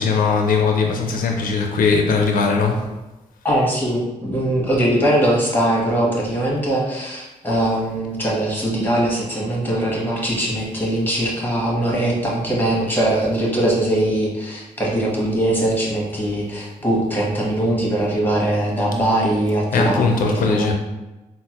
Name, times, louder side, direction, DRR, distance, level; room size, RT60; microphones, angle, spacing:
voice 1, 0.0-2.9 19.7-20.7, left 4 dB, 80° left, 3 dB, 0.4 m, -19 dB
voice 2, 3.4-20.7, right 1 dB, 15° left, -4 dB, 1.2 m, -21 dB
3.7 x 2.0 x 2.9 m, 1.1 s
cardioid pair, 70°, 14 cm